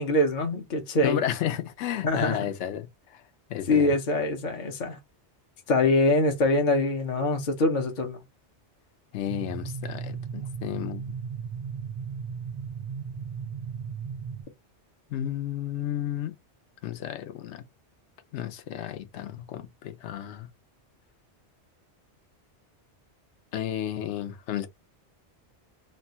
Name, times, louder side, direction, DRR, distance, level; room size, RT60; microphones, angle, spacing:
voice 1, 0.0-1.2 2.0-2.4 3.7-5.0 5.7-8.2, left 2 dB, 50° left, 0.7 m, -24 dB
voice 2, 1.0-3.2 3.5-3.9 9.1-11.2 15.1-16.3 16.8-17.6 18.3-20.5 23.5-24.7, left 10 dB, 80° left, 0.9 m, -32 dB
sound 1, 9.3-14.4, right 6 dB, 50° right, 0.5 m, -36 dB
3.0 x 2.2 x 2.7 m
omnidirectional pair, 1.2 m